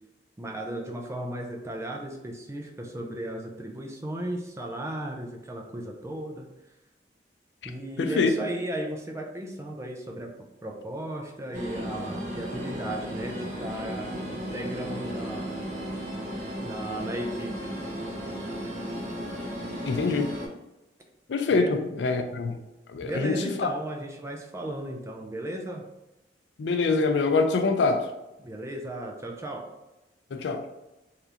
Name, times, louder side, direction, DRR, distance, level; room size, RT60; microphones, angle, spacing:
voice 1, 0.4-6.5 7.6-15.5 16.6-17.7 21.5-21.7 23.0-25.8 28.4-29.7, right 1 dB, 15° right, 1 dB, 0.4 m, -35 dB
voice 2, 8.0-8.3 19.8-20.3 21.3-22.5 22.9-23.7 26.6-28.1 30.3-30.6, left 4 dB, 80° left, 6 dB, 0.4 m, -25 dB
sound 1, 11.5-20.5, equal, 45° right, 0.8 m, -35 dB
3.4 x 2.8 x 2.5 m, 0.97 s
head